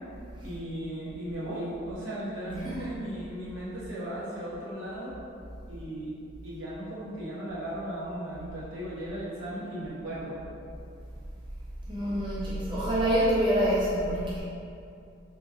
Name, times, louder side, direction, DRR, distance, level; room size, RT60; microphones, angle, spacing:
voice 1, 0.4-5.1 5.7-6.1 6.4-10.4, right 1 dB, 80° right, -8 dB, 0.9 m, -36 dB
voice 2, 2.5-2.9 11.9-14.4, right 1 dB, 25° right, -7 dB, 0.3 m, -26 dB
2.8 x 2.4 x 2.6 m, 2.5 s
head